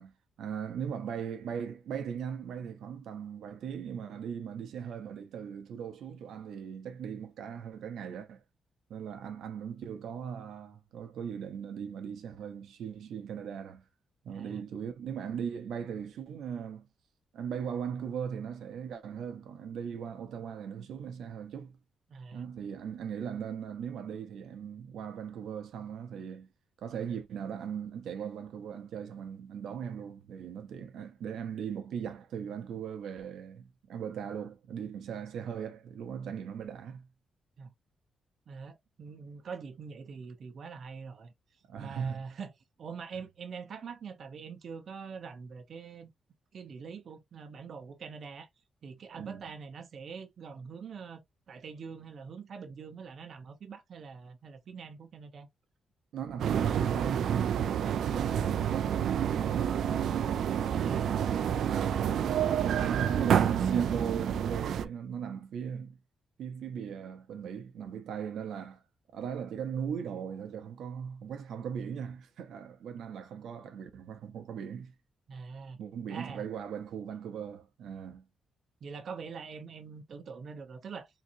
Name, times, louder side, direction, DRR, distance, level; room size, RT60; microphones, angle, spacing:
voice 1, 0.0-8.4 8.9-13.8 14.2-16.9 17.3-21.8 22.3-26.5 26.8-37.1 41.7-42.4 49.2-49.4 56.1-59.8 61.1-66.0 66.4-68.8 69.1-74.9 75.8-78.3, right 7 dB, 85° right, 0.8 m, -39 dB
voice 2, 14.3-14.6 22.1-22.4 37.6-37.7 38.5-41.3 41.8-42.5 42.8-46.1 46.5-48.5 48.8-51.2 51.5-55.5 60.7-61.5 75.3-75.8 76.1-76.4 78.8-81.1, right 5 dB, 50° right, 0.8 m, -44 dB
sound 1, 56.4-64.8, right 9 dB, 70° right, 0.4 m, -28 dB
3.9 x 2.8 x 2.6 m
wide cardioid pair, 165°, 0 cm